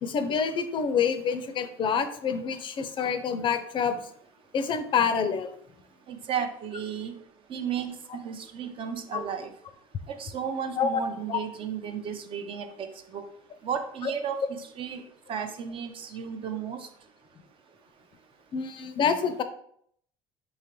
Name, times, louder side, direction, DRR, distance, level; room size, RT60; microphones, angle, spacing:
voice 1, 0.0-4.0 4.5-5.5 9.1-9.2 10.8-11.0 11.3-11.4 14.0-14.1 18.5-19.4, left 6 dB, 40° left, 9 dB, 0.4 m, -27 dB
voice 2, 6.1-7.1 7.5-9.5 10.1-13.2 13.6-15.0 15.3-16.9, right 7 dB, 45° right, 8 dB, 0.5 m, -34 dB
3.8 x 2.9 x 3.0 m, 0.67 s
hypercardioid pair, 80°, 13 cm